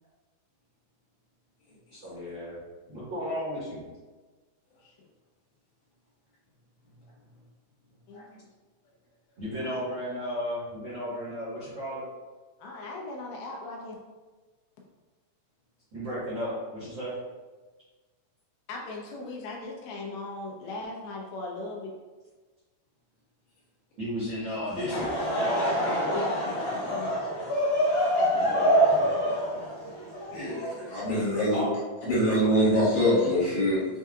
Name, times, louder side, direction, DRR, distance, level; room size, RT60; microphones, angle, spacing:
voice 1, 1.9-2.6 2.9-3.8 9.4-12.0 15.9-17.1 24.0-25.6 28.3-28.9 31.5-31.8, equal, 60° right, -11 dB, 1.3 m, -34 dB
voice 2, 8.1-8.5 9.7-10.0 12.6-14.0 18.7-21.9 26.1-27.2, left 2 dB, 85° left, -1 dB, 2.6 m, -38 dB
Laughter / Crowd, 24.7-31.1, equal, 50° left, 1.6 m, -26 dB
voice 3, 30.3-31.7 32.0-33.9, equal, 70° left, -9 dB, 3.2 m, -24 dB
6.6 x 2.7 x 2.4 m, 1.3 s
omnidirectional pair, 4.3 m